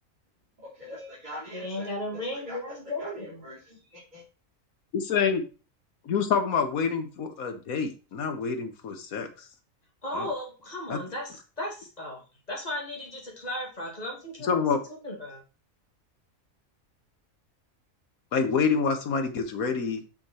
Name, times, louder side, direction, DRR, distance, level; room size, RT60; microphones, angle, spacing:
voice 1, 0.6-1.9 2.3-2.6 3.0-4.2, equal, 30° right, -7 dB, 3.2 m, -43 dB
voice 2, 1.5-3.4 10.0-12.2 12.5-14.5 15.0-15.4, left 1 dB, 30° left, -1 dB, 2.6 m, -35 dB
voice 3, 4.9-5.4 6.0-9.3 10.1-10.3 10.9-11.0 14.4-14.8 18.3-20.0, left 5 dB, 80° left, 7 dB, 1.6 m, -27 dB
6.5 x 6.3 x 4.4 m, 0.34 s
omnidirectional pair, 1.5 m